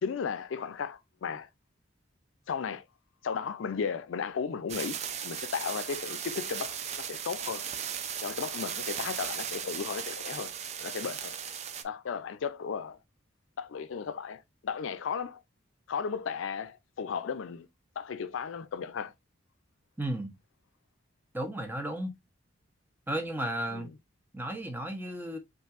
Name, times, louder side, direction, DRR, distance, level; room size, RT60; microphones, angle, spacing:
voice 1, 0.0-1.5 2.5-2.8 3.2-7.7 8.2-10.5 10.8-11.3 11.8-13.0 13.6-15.4 15.9-17.7 18.0-19.1 23.7-23.9, left 6 dB, 75° left, 0.4 m, -35 dB
sound 1, 4.7-11.8, right 8 dB, 35° right, 0.4 m, -37 dB
voice 2, 20.0-20.3 21.3-22.1 23.1-23.9 24.3-25.4, right 1 dB, 10° right, 0.8 m, -34 dB
5.5 x 2.6 x 2.4 m
head